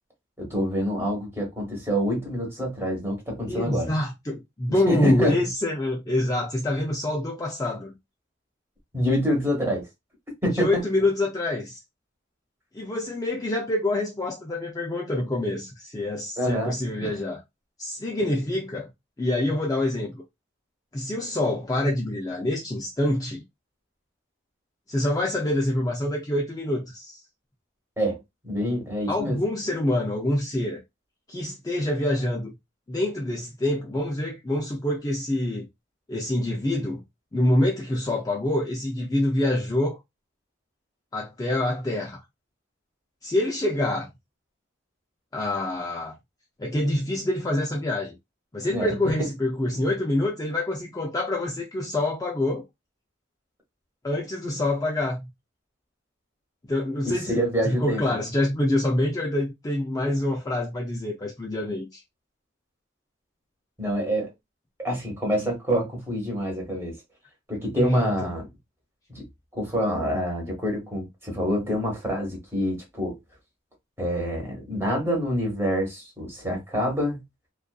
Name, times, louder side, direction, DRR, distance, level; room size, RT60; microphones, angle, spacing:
voice 1, 0.4-3.9 4.7-5.4 8.9-9.9 10.4-10.8 16.4-16.7 17.0-17.2 28.0-28.2 28.4-29.4 48.7-48.9 57.0-58.0 63.8-64.3 64.8-67.0 67.5-68.5 69.1-69.2 69.5-73.2 74.0-77.2, equal, 15° right, 1.1 m, -26 dB
voice 2, 3.5-7.9 10.5-11.8 12.7-17.4 17.8-18.9 19.2-20.2 20.9-23.4 24.9-27.2 29.1-30.8 31.3-32.5 32.9-35.7 36.1-37.0 37.3-40.0 41.1-42.2 43.2-44.1 45.3-46.2 46.6-48.2 48.5-52.6 54.0-55.3 56.7-57.4 57.6-62.0 67.8-68.3, left 1 dB, 20° left, 0.4 m, -26 dB
2.5 x 2.3 x 2.3 m
head